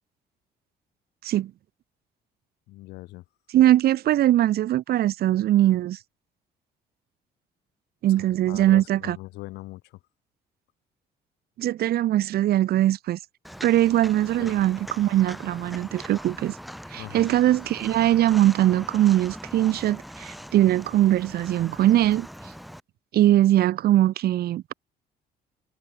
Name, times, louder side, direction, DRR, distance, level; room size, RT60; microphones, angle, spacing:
voice 1, 2.7-3.2 8.1-10.0 14.4-14.6 17.0-17.3, left 18 dB, 85° left, 4.8 m, -41 dB
voice 2, 3.5-6.0 8.0-9.2 11.6-13.2 13.6-16.6 16.9-22.3 23.1-24.7, right 13 dB, 65° right, 2.8 m, -21 dB
Walk footsteps, 13.4-22.8, equal, ahead, 6.3 m, -41 dB
cardioid pair, 110°, 17 cm